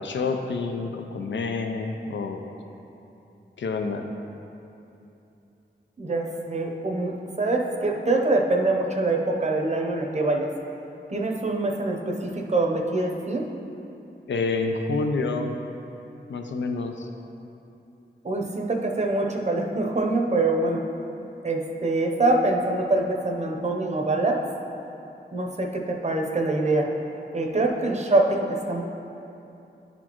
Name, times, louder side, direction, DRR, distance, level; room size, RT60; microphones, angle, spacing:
voice 1, 0.0-2.4 3.6-4.1 14.3-15.6 16.3-17.1, left 3 dB, 85° left, 4 dB, 0.4 m, -28 dB
voice 2, 6.0-10.5 11.1-13.4 18.2-20.8 21.4-24.4 25.3-26.9 27.3-28.8, right 2 dB, 40° right, 1 dB, 0.7 m, -24 dB
10.0 x 4.2 x 3.0 m, 2.9 s
wide cardioid pair, 70°, 19 cm